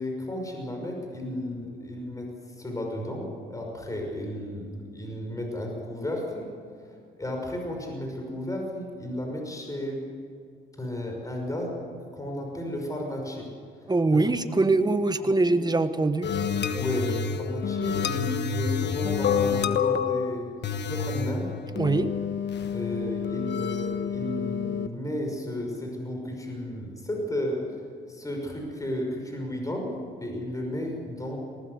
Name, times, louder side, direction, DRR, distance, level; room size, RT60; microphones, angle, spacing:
voice 1, 0.0-2.3 2.6-6.5 7.2-10.0 10.8-11.8 12.1-13.5 14.1-14.2 14.8-14.9 15.4-15.6 16.7-20.5 20.8-21.5 22.7-27.6 28.1-29.9 30.2-31.4, left 1 dB, 15° left, 1 dB, 5.9 m, -33 dB
voice 2, 13.9-16.3 21.7-22.1, right 3 dB, 20° right, 10 dB, 1.3 m, -23 dB
sound 1, 16.2-24.9, left 7 dB, 60° left, 1.3 m, -28 dB
19.5 x 19.5 x 8.1 m, 2.2 s
cardioid pair, 90°, 20 cm